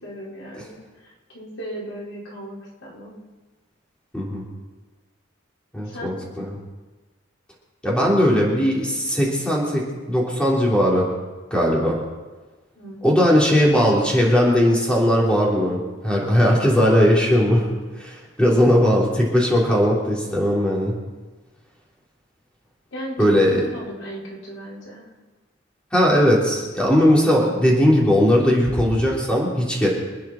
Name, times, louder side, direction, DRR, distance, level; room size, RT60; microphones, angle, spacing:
voice 1, 0.0-3.2 5.8-6.1 12.7-13.2 18.4-18.7 22.9-25.1, equal, 80° left, -5 dB, 4.8 m, -36 dB
voice 2, 4.1-4.4 5.7-6.5 7.8-11.1 11.5-12.0 13.0-17.6 18.0-20.9 23.2-23.6 25.9-29.9, equal, 5° left, -4 dB, 3.6 m, -18 dB
26.5 x 9.8 x 4.5 m, 1.3 s
head